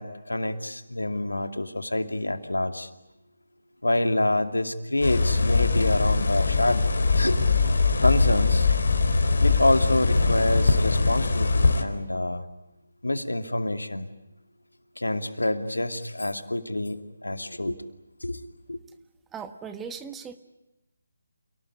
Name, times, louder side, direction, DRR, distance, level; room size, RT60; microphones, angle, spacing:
voice 1, 0.0-2.9 3.8-6.8 7.1-7.4 7.6-7.7 8.0-8.8 9.4-12.4 13.0-14.1 15.0-17.8 18.2-18.4 18.7-18.8, left 1 dB, 85° left, 9 dB, 2.5 m, -27 dB
sound 1, 5.0-11.8, left 4 dB, 60° left, 3.9 m, -22 dB
voice 2, 19.3-20.4, right 6 dB, 10° right, 8 dB, 1.4 m, -38 dB
29.0 x 18.5 x 9.6 m, 0.94 s
figure-of-eight pair, 155°, 0 cm